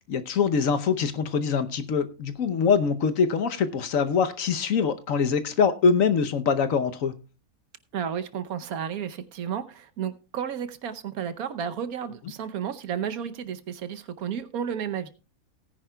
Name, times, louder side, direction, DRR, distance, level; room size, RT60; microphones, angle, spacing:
voice 1, 0.1-7.1, left 6 dB, 60° left, 1.2 m, -24 dB
voice 2, 7.9-15.1, right 8 dB, 70° right, 1.2 m, -32 dB
18.0 x 10.0 x 2.3 m
omnidirectional pair, 1.6 m